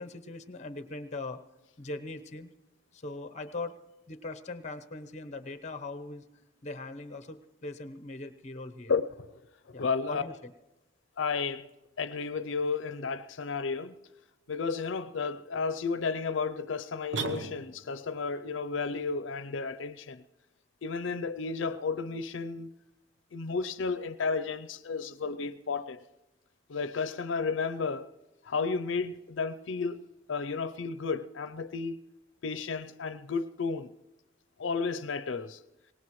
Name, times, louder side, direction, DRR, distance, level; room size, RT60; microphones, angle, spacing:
voice 1, 0.0-1.4 1.8-2.5 2.9-3.8 4.1-6.2 6.6-9.0 9.7-10.5, left 2 dB, 35° left, 0.9 m, -40 dB
voice 2, 9.7-10.2 11.2-11.7 12.0-13.9 14.5-20.2 20.8-22.7 23.3-26.0 26.7-28.1 28.5-32.0 32.4-33.9 34.6-35.6, left 4 dB, 80° left, 0.5 m, -32 dB
sound 1, 17.1-18.0, right 3 dB, 75° right, 0.9 m, -35 dB
23.5 x 19.0 x 3.1 m
head